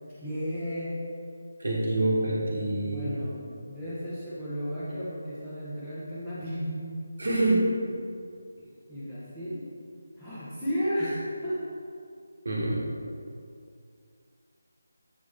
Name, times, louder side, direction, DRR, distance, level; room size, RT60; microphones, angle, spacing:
voice 1, 0.1-1.0 2.8-7.0 8.9-9.7 10.2-11.7, equal, 5° left, -15 dB, 1.3 m, -33 dB
voice 2, 1.6-3.1 7.2-7.7 12.4-12.8, right 2 dB, 65° right, -5 dB, 1.3 m, -26 dB
8.2 x 5.0 x 3.5 m, 2.4 s
figure-of-eight pair, 155°, 0 cm